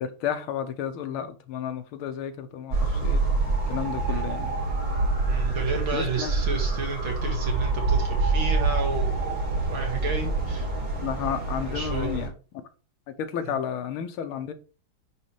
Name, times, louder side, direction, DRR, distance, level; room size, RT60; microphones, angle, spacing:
voice 1, 0.0-3.2 3.7-4.5 5.9-6.4 11.0-12.3 13.2-14.5, left 9 dB, 85° left, 1.7 m, -32 dB
sound 1, 2.7-12.3, right 3 dB, 55° right, 4.6 m, -26 dB
voice 2, 5.3-9.4 9.7-10.7 11.6-12.3 13.4-13.5, right 4 dB, 70° right, 2.8 m, -32 dB
9.4 x 3.3 x 4.8 m
omnidirectional pair, 2.3 m